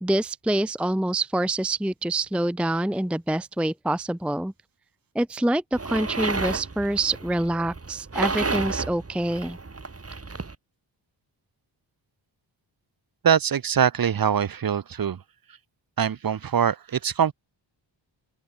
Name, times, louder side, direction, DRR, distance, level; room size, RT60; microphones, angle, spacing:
voice 1, 0.0-4.5 5.1-9.6, right 1 dB, ahead, 0.6 m, -26 dB
sound 1, 5.7-10.6, right 3 dB, 30° right, 4.3 m, -31 dB
voice 2, 13.2-15.2 16.0-17.3, right 8 dB, 45° right, 1.0 m, -23 dB
open air
wide cardioid pair, 90°, 47 cm